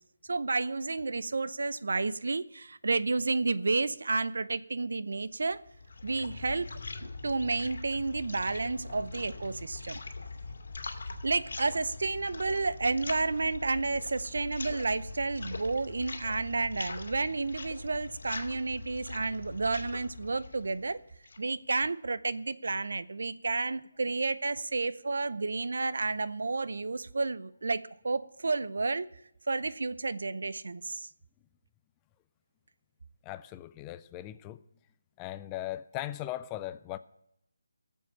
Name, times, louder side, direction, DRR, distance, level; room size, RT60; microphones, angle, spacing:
voice 1, 0.3-5.6 6.0-6.7 7.0-10.0 11.2-21.0 21.4-29.1 29.5-31.1, right 3 dB, 70° right, 0.6 m, -31 dB
sound 1, 5.5-21.5, left 3 dB, 70° left, 2.1 m, -42 dB
voice 2, 33.2-34.6 35.2-37.0, left 14 dB, 15° left, 0.4 m, -38 dB
17.0 x 7.3 x 5.6 m
figure-of-eight pair, 165°, 0 cm